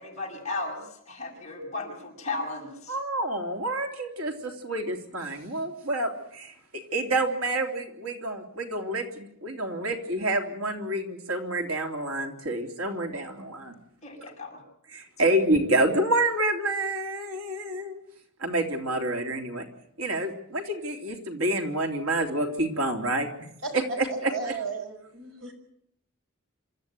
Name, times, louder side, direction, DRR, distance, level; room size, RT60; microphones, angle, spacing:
voice 1, 0.0-3.0 14.0-14.6, left 3 dB, 35° left, -1 dB, 7.1 m, -35 dB
voice 2, 2.9-6.5 6.9-13.7 14.9-18.0 18.4-19.6 20.0-23.3 23.7-24.6, right 1 dB, 85° right, 3 dB, 3.4 m, -28 dB
voice 3, 24.1-25.5, right 4 dB, 65° right, 4 dB, 5.6 m, -35 dB
27.0 x 13.5 x 9.4 m, 0.74 s
head